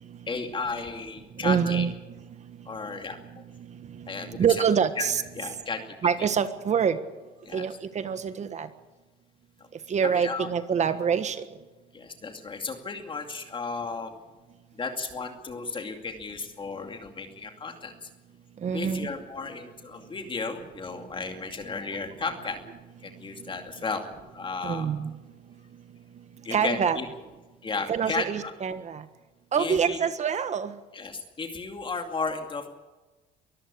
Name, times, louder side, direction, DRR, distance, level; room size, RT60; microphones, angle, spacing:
voice 1, 0.3-1.9 2.7-3.4 4.1-4.6 5.0-5.1 5.4-5.8 6.2-6.3 7.4-7.7 10.0-10.5 11.9-14.1 14.7-18.1 18.7-22.6 23.0-24.1 24.3-24.9 26.4-27.1 27.6-28.5 29.5-30.0 30.9-32.7, left 4 dB, 30° left, 5 dB, 2.4 m, -34 dB
voice 2, 1.4-1.9 4.3-5.2 6.0-7.0 7.5-8.7 9.9-11.4 18.6-19.1 24.6-25.1 26.5-27.0 27.9-29.0 29.5-30.7, right 7 dB, 45° right, 11 dB, 1.5 m, -25 dB
23.5 x 14.5 x 8.5 m, 1.2 s
cardioid pair, 110°, 17 cm